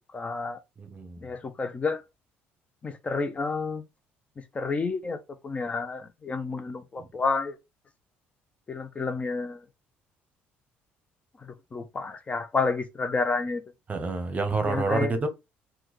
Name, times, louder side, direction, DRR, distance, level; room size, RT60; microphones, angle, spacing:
voice 1, 0.1-0.6 1.2-2.0 2.8-3.8 4.5-7.5 8.7-9.6 11.7-13.6 14.7-15.1, left 4 dB, 30° left, 0.5 m, -30 dB
voice 2, 0.8-1.2 13.9-15.3, right 3 dB, 35° right, 0.8 m, -28 dB
3.6 x 2.2 x 3.1 m
supercardioid pair, 85°, 5 cm